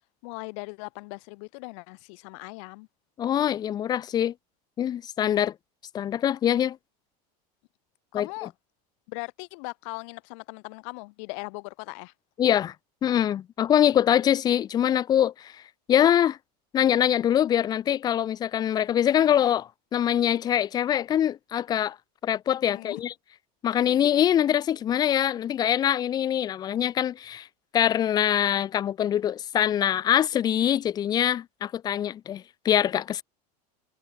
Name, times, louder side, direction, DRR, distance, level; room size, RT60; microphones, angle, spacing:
voice 1, 0.2-2.9 8.1-8.5 9.1-12.1 22.7-23.0, left 33 dB, 50° left, 3.1 m, -39 dB
voice 2, 3.2-4.3 4.8-5.5 5.9-6.8 8.1-8.3 12.4-12.7 13.0-15.5 15.9-16.4 16.7-22.0 22.2-23.1 23.6-27.5 27.7-33.2, left 10 dB, 20° left, 1.2 m, -24 dB
supercardioid pair, 180°, 20 cm